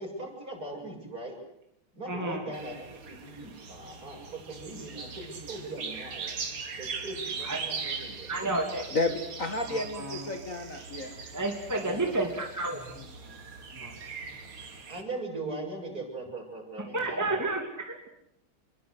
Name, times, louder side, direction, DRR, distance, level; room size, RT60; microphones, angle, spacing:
voice 1, 0.0-1.4 1.9-6.4 6.7-9.0 11.7-12.3 14.9-17.6, right 2 dB, 45° right, 1 dB, 7.8 m, -40 dB
voice 2, 2.1-2.4 7.4-7.6 8.3-8.9 9.7-10.2 11.3-13.0 13.7-13.9 16.8-18.1, right 2 dB, 10° right, 2 dB, 2.8 m, -31 dB
sound 1, 2.5-15.0, right 5 dB, 80° right, 3.4 m, -40 dB
voice 3, 8.9-11.2 13.2-13.4, left 2 dB, 40° left, 7 dB, 2.3 m, -32 dB
28.0 x 23.0 x 8.2 m, 0.76 s
omnidirectional pair, 2.3 m